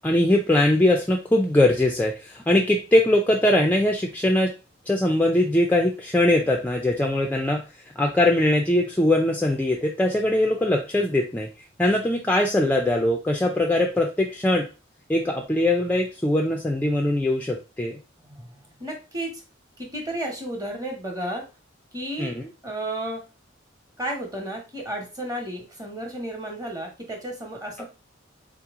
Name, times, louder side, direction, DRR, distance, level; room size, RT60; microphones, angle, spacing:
voice 1, 0.0-4.5 4.9-7.6 8.0-11.5 11.8-14.7 15.1-18.0 22.2-22.4, left 1 dB, 10° left, 2 dB, 0.4 m, -21 dB
voice 2, 18.2-19.3 19.8-21.4 21.9-22.3 22.6-23.2 24.0-27.8, right 1 dB, 20° right, 1 dB, 1.1 m, -32 dB
3.9 x 3.0 x 3.6 m, 0.31 s
head